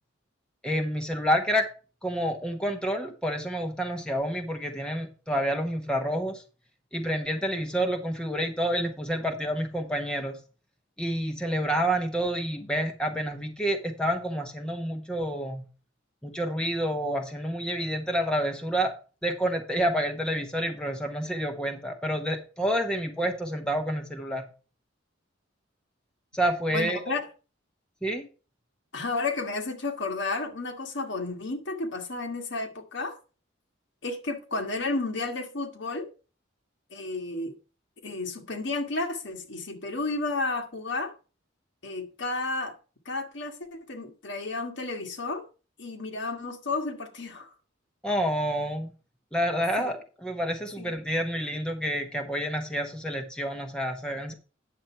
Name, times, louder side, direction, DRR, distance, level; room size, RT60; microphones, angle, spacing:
voice 1, 0.6-1.7 2.0-6.4 6.9-10.4 11.0-15.6 16.2-18.9 19.2-24.4 26.3-27.1 28.0-28.3 48.0-48.9 49.3-54.3, equal, 5° left, 1.1 m, -28 dB
voice 2, 26.7-27.2 28.9-33.2 34.0-36.1 36.9-37.5 38.0-41.1 41.8-42.7 43.0-45.5 45.8-47.5 49.8-49.9 50.8-50.9, left 3 dB, 65° left, 1.6 m, -32 dB
9.3 x 7.0 x 4.5 m
head